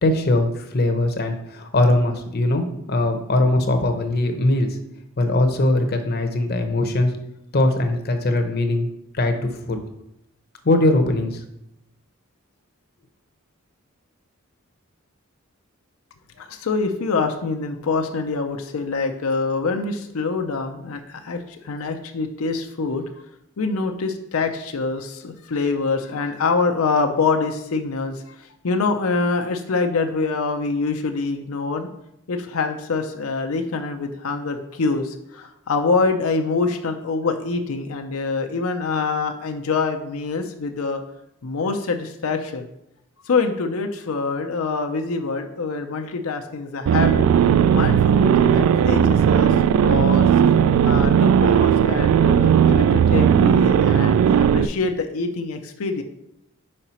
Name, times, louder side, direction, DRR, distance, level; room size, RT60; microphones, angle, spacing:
voice 1, 0.0-4.8 5.2-7.1 7.5-8.9 9.2-9.4 9.7-9.8 10.6-11.4, left 2 dB, 50° left, 5 dB, 0.7 m, -20 dB
voice 2, 16.4-23.0 23.6-31.9 32.3-41.0 41.4-42.7 43.2-47.3 47.7-49.5 49.8-50.5 50.8-56.0, left 4 dB, 90° left, 5 dB, 0.6 m, -25 dB
sound 1, 46.9-54.7, right 8 dB, 80° right, 0.3 m, -16 dB
4.9 x 4.3 x 5.5 m, 0.81 s
head